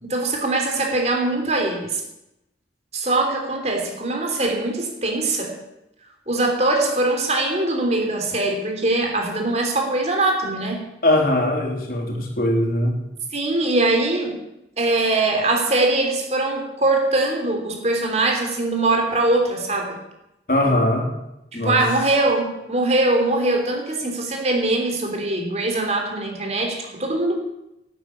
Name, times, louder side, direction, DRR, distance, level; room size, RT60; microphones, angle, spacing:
voice 1, 0.0-2.0 2.9-5.6 6.3-10.9 13.3-14.4 14.8-20.0 21.5-27.3, right 2 dB, 40° right, 2 dB, 3.3 m, -22 dB
voice 2, 11.0-12.9 20.5-21.1 21.5-21.8, left 1 dB, 55° left, 0 dB, 3.6 m, -20 dB
11.5 x 9.5 x 9.7 m, 0.88 s
head